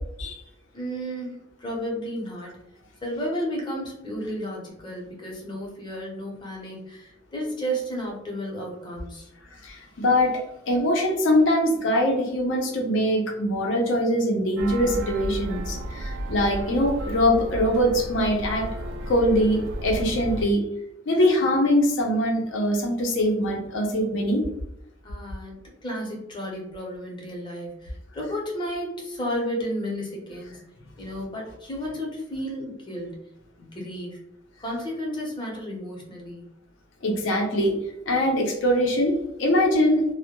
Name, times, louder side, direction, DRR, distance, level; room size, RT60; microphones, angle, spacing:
voice 1, 0.7-2.6 3.0-9.3 25.0-25.6 25.8-30.6 31.0-33.3 33.6-34.2 34.6-36.4, equal, 25° left, -2 dB, 0.7 m, -32 dB
voice 2, 9.6-10.4 10.7-18.6 19.1-20.6 21.1-24.4 37.0-37.7 38.1-40.0, equal, 75° left, 0 dB, 0.6 m, -22 dB
sound 1, 14.6-20.5, right 1 dB, 80° right, 0.4 m, -33 dB
2.2 x 2.1 x 2.8 m, 0.81 s
head